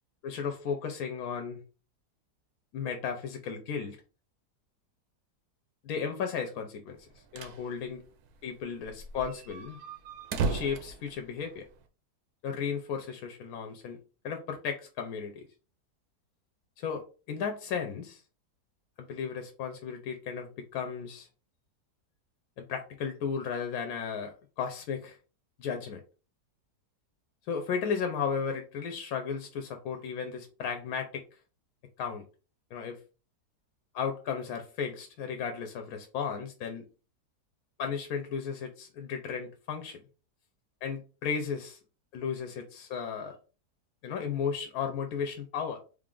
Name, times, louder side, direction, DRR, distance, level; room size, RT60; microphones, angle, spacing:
voice 1, 0.2-1.6 2.7-4.0 5.8-7.0 7.3-8.0 8.4-9.8 10.4-11.7 12.4-14.0 14.2-15.5 16.8-18.2 19.0-21.3 22.6-25.2 25.6-26.0 27.5-31.2 32.0-32.2 32.7-33.0 33.9-36.8 37.8-40.0 40.8-41.8 42.1-43.4 44.0-45.8, left 6 dB, 70° left, 1.0 m, -34 dB
sound 1, 7.0-7.6 7.9-8.0 8.3-8.4 8.8-11.8, right 4 dB, 70° right, 1.0 m, -35 dB
3.4 x 2.4 x 3.7 m
omnidirectional pair, 1.8 m